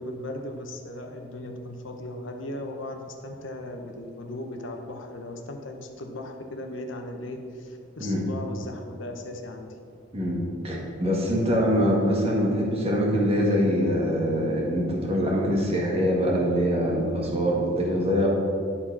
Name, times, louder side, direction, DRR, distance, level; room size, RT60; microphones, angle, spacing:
voice 1, 0.0-9.7, left 1 dB, 75° left, 3 dB, 0.9 m, -37 dB
voice 2, 10.1-18.3, equal, 30° right, -3 dB, 1.7 m, -24 dB
11.0 x 4.3 x 6.0 m, 2.3 s
head